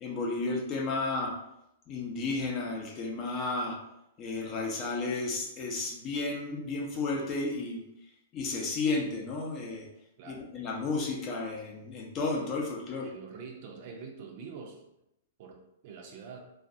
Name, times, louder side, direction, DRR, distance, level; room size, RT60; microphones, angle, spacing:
voice 1, 0.0-1.4 1.9-3.8 4.2-7.8 8.3-9.9 10.2-13.1, left 3 dB, 35° left, 0 dB, 0.6 m, -32 dB
voice 2, 13.0-14.8 15.4-16.4, right 5 dB, 50° right, 1 dB, 0.5 m, -45 dB
2.3 x 2.2 x 2.6 m, 0.83 s
hypercardioid pair, 115°, 0 cm